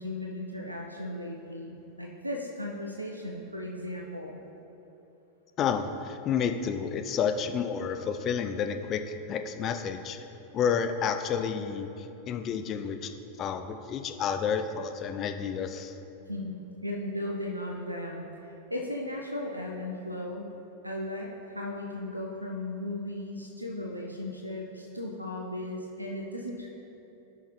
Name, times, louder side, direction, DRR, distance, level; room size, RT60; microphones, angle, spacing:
voice 1, 0.0-4.4 16.3-18.3 18.7-20.5 20.8-26.7, left 1 dB, 90° right, 0 dB, 0.6 m, -36 dB
voice 2, 5.6-10.2 10.5-13.1 13.4-15.9, left 7 dB, 30° left, 7 dB, 0.5 m, -30 dB
14.0 x 5.7 x 3.2 m, 3.0 s
figure-of-eight pair, 90°, 0 cm